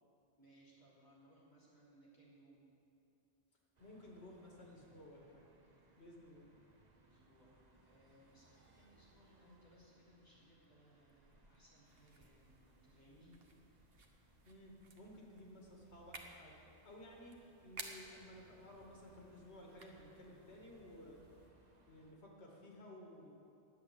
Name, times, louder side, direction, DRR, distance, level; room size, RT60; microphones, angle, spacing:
voice 1, 0.4-2.7 7.0-13.4, right 1 dB, 20° left, -7 dB, 3.4 m, -66 dB
voice 2, 3.8-5.5 6.0-6.5 14.5-17.4 17.6-21.2 21.9-23.3, left 1 dB, 80° left, -2 dB, 2.5 m, -56 dB
sound 1, 3.8-22.1, right 2 dB, 40° right, 1.3 m, -70 dB
sound 2, 11.8-21.5, right 3 dB, 65° right, 1.3 m, -57 dB
10.0 x 7.7 x 8.8 m, 2.6 s
omnidirectional pair, 1.1 m